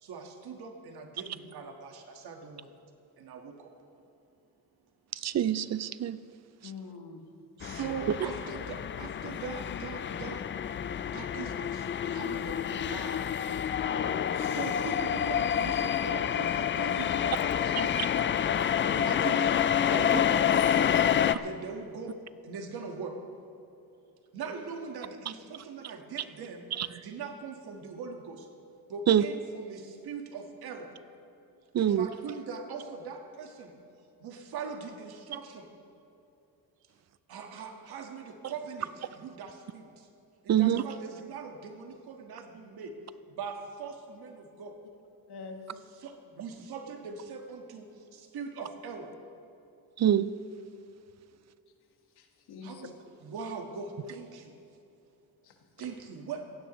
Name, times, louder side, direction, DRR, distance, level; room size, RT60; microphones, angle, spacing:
voice 1, 0.0-2.7 3.2-3.7 7.6-10.5 11.1-13.3 14.4-18.1 18.9-19.5 19.9-23.2 24.3-26.7 27.0-28.5 28.9-30.9 31.8-33.7 34.2-35.7 37.3-38.9 39.2-39.9 40.4-42.9 43.3-44.8 45.7-47.8 48.1-49.1 52.6-52.9 53.2-54.5 55.8-56.4, right 5 dB, 75° right, 3 dB, 1.7 m, -41 dB
voice 2, 5.1-6.2 26.8-26.9 29.1-29.2 31.7-32.1 40.5-40.8 50.0-50.3, right 10 dB, 45° right, 15 dB, 0.5 m, -25 dB
voice 3, 6.6-7.3 45.3-45.6 52.1-52.9 55.4-55.9, left 5 dB, 85° left, 3 dB, 1.6 m, -45 dB
sound 1, 7.6-21.3, left 9 dB, 35° left, 0.4 m, -28 dB
17.0 x 15.5 x 3.1 m, 2.7 s
cardioid pair, 100°, 38 cm